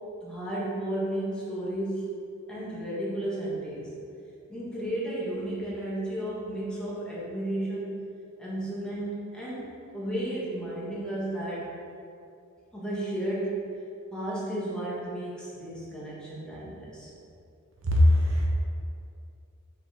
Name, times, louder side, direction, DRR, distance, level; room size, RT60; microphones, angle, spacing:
voice 1, 0.2-2.0 2.5-3.9 4.5-7.9 8.4-9.7 9.9-11.7 12.7-13.5 14.1-17.1, right 1 dB, 5° left, -8 dB, 1.5 m, -33 dB
voice 2, 17.8-18.5, left 1 dB, 65° right, -2 dB, 1.0 m, -20 dB
5.9 x 4.0 x 5.0 m, 2.5 s
head